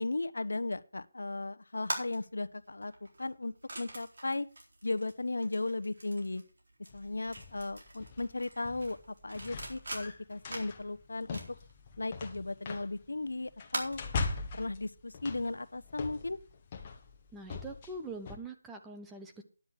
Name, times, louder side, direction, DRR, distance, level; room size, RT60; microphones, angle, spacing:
voice 1, 0.0-2.9 3.2-4.5 4.8-6.4 6.9-9.0 9.2-11.4 12.0-14.0 14.5-16.4, left 2 dB, 75° left, 13 dB, 0.9 m, -36 dB
sound 1, 1.8-14.3, right 2 dB, 55° right, 4.1 m, -45 dB
sound 2, 6.9-18.4, left 4 dB, 20° left, 1.4 m, -42 dB
voice 2, 17.3-19.4, right 2 dB, 5° right, 3 dB, 0.8 m, -43 dB
10.5 x 8.2 x 6.0 m, 0.36 s
figure-of-eight pair, 170°, 0 cm